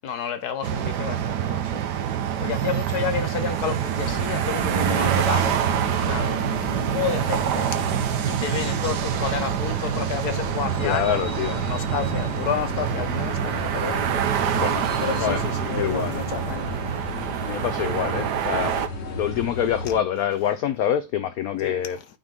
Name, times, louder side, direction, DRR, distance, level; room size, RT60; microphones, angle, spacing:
voice 1, 0.0-1.8 2.4-7.7 8.2-11.2 11.5-14.0 15.0-16.8 21.6-22.0, left 8 dB, 65° left, 1.1 m, -31 dB
sound 1, 0.6-18.9, right 9 dB, 65° right, 1.3 m, -26 dB
sound 2, 4.0-20.0, left 2 dB, 40° left, 1.3 m, -35 dB
voice 2, 10.8-11.6 14.5-14.9 15.2-15.5 15.7-16.3 17.5-18.8 19.2-22.0, left 10 dB, 80° left, 0.8 m, -26 dB
8.8 x 3.7 x 3.5 m
omnidirectional pair, 2.1 m